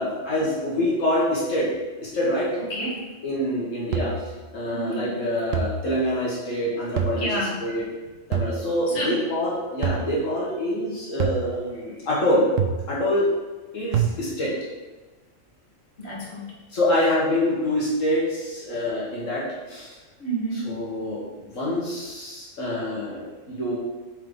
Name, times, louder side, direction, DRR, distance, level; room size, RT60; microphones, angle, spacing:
voice 1, 0.0-1.7 2.0-2.5 3.2-4.1 4.5-7.9 8.3-12.5 12.9-13.3 13.7-14.5 16.7-20.0 20.5-23.8, left 1 dB, 75° left, -6 dB, 1.8 m, -26 dB
voice 2, 2.7-3.0 4.7-5.1 7.1-7.6 9.0-9.2 16.0-16.4 20.2-20.8, right 1 dB, 50° left, -5 dB, 1.8 m, -29 dB
sound 1, 3.9-4.3 5.5-5.9 7.0-7.4 8.3-8.7 9.8-10.2 11.2-11.6 12.6-13.0 13.9-14.1, right 7 dB, 80° right, 1.0 m, -26 dB
7.4 x 4.6 x 3.8 m, 1.2 s
omnidirectional pair, 1.3 m